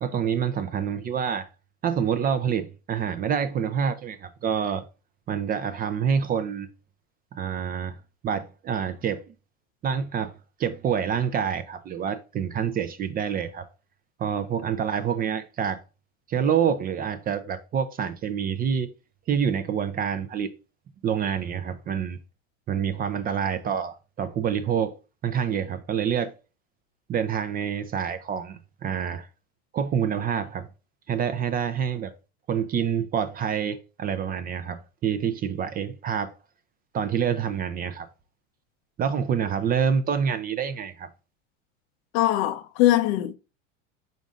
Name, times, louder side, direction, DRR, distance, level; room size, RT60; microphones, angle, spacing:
voice 1, 0.0-1.5 1.8-4.8 5.3-6.7 7.3-8.0 8.2-9.3 9.8-10.3 10.6-13.7 14.2-15.8 16.3-18.9 19.3-20.5 21.0-22.2 22.7-25.0 25.2-26.3 27.1-29.3 29.7-30.7 31.1-32.1 32.5-36.3 36.9-38.1 39.0-41.1, right 7 dB, 25° right, 0.4 m, -27 dB
voice 2, 42.1-43.3, left 14 dB, 55° left, 0.6 m, -21 dB
5.2 x 4.0 x 2.4 m
hypercardioid pair, 105°, 35 cm